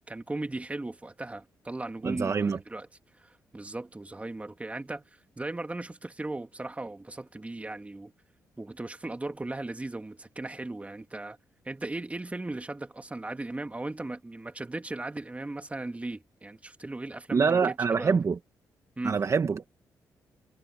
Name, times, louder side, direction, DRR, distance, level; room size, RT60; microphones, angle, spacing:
voice 1, 0.1-2.9 3.2-5.0 5.4-8.1 8.6-11.4 11.6-18.2 19.0-19.2, right 2 dB, 20° right, 2.4 m, -37 dB
voice 2, 2.0-2.6 17.3-18.4 19.0-19.7, right 5 dB, 45° right, 1.3 m, -25 dB
cardioid pair, 65°, 7 cm